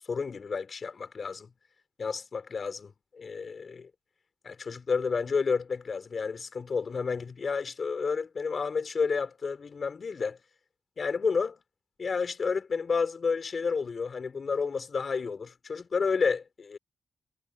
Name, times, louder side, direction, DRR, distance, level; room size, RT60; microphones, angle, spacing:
voice 1, 0.1-1.5 2.0-3.9 4.4-10.4 11.0-11.6 12.0-16.8, left 5 dB, 50° left, 3.7 m, -30 dB
cardioid pair, 95°, 0 cm